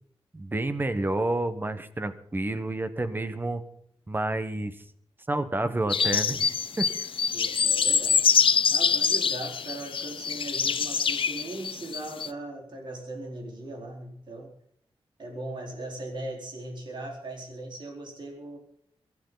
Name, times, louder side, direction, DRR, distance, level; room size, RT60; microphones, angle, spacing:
voice 1, 0.3-3.6 4.1-4.8 5.3-6.5 6.8-6.9, right 2 dB, 20° right, 11 dB, 1.2 m, -29 dB
sound 1, 5.9-12.3, left 6 dB, 65° left, 0.8 m, -25 dB
voice 2, 7.1-8.3 8.7-14.5 15.2-18.6, right 2 dB, 55° right, -1 dB, 4.4 m, -39 dB
23.5 x 13.5 x 4.0 m, 0.66 s
wide cardioid pair, 110°, 10 cm